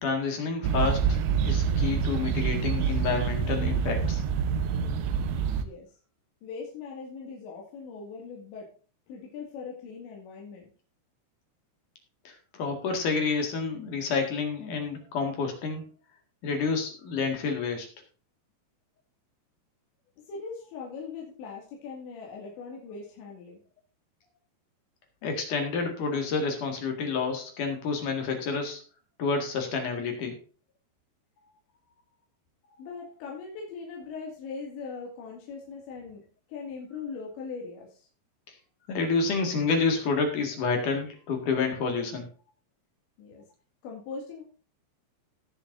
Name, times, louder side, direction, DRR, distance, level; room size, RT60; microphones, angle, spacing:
voice 1, 0.0-4.2 12.2-15.8 16.4-17.9 25.2-28.8 29.2-30.4 38.9-42.3, left 4 dB, 55° left, 4 dB, 3.0 m, -29 dB
sound 1, 0.6-5.7, right 6 dB, 75° right, 3.0 m, -26 dB
voice 2, 6.4-8.7 9.1-10.7 20.3-23.6 32.8-36.2 36.5-38.1 43.2-43.4 43.8-44.4, left 5 dB, 80° left, -1 dB, 4.5 m, -40 dB
19.0 x 7.0 x 2.6 m, 0.39 s
omnidirectional pair, 5.1 m